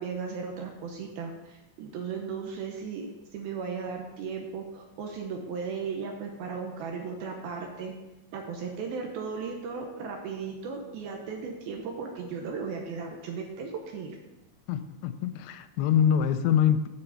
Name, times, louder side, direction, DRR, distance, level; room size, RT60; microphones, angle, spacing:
voice 1, 0.0-3.1 3.3-7.9 8.3-14.2, right 5 dB, 75° right, 2 dB, 2.5 m, -36 dB
voice 2, 14.7-16.9, left 9 dB, 90° left, 10 dB, 2.8 m, -24 dB
8.0 x 5.4 x 7.0 m, 1.0 s
omnidirectional pair, 5.0 m